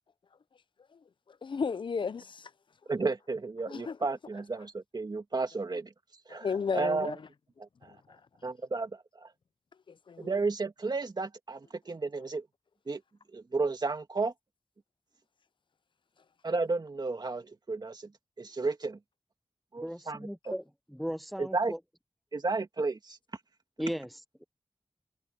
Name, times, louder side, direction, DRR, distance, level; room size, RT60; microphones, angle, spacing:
voice 1, 1.3-2.5 3.7-4.0 6.3-7.2 7.8-8.2 9.9-10.4, left 5 dB, 75° left, 0.6 m, -34 dB
voice 2, 2.9-5.9 6.3-6.5 6.7-7.1 7.8-7.9 8.4-9.3 10.2-12.4 12.9-13.0 13.3-14.3 16.4-18.0 18.4-19.0 19.7-20.5 21.4-21.7 22.3-23.2, right 3 dB, 55° right, 2.1 m, -32 dB
voice 3, 19.8-20.6 20.9-21.8 23.8-24.4, equal, ahead, 0.7 m, -37 dB
wide cardioid pair, 60°, 8 cm